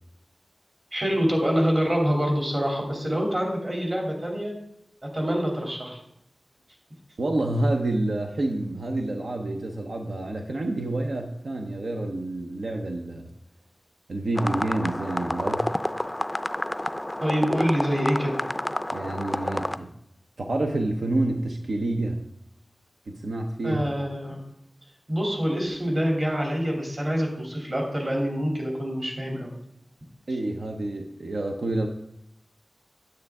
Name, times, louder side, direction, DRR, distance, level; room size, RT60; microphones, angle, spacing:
voice 1, 0.9-4.6 5.0-6.0 17.2-18.4 23.6-24.4 25.1-29.5, equal, 40° right, 0 dB, 2.7 m, -26 dB
voice 2, 7.2-13.3 14.1-15.7 18.9-19.9 20.4-22.2 23.1-23.8 30.3-31.9, right 2 dB, 90° right, 2 dB, 0.7 m, -28 dB
sound 1, 14.4-19.8, left 1 dB, 15° left, 0.4 m, -29 dB
9.3 x 7.9 x 3.6 m, 0.80 s
wide cardioid pair, 65°, 0 cm